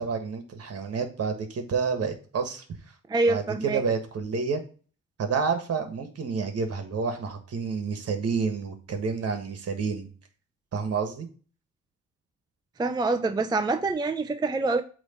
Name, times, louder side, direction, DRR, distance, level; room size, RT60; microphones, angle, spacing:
voice 1, 0.0-2.8 3.3-4.6 5.2-10.1 10.7-11.3, right 5 dB, 55° right, 1.6 m, -29 dB
voice 2, 3.1-3.8 12.8-14.8, right 3 dB, 15° right, 0.5 m, -25 dB
8.0 x 3.1 x 4.3 m
cardioid pair, 90°, 30 cm